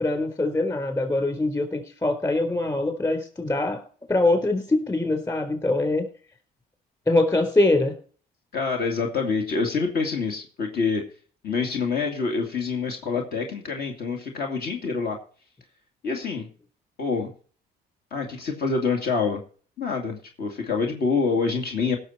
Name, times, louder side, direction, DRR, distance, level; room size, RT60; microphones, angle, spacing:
voice 1, 0.0-3.8 4.1-6.1 7.1-7.9, left 2 dB, 20° left, 6 dB, 4.0 m, -23 dB
voice 2, 8.5-11.0 11.4-15.2 16.0-16.5 17.0-17.3 18.1-19.4 19.8-22.0, left 4 dB, 65° left, 2 dB, 2.4 m, -26 dB
17.0 x 6.7 x 4.3 m, 0.42 s
cardioid pair, 110°, 17 cm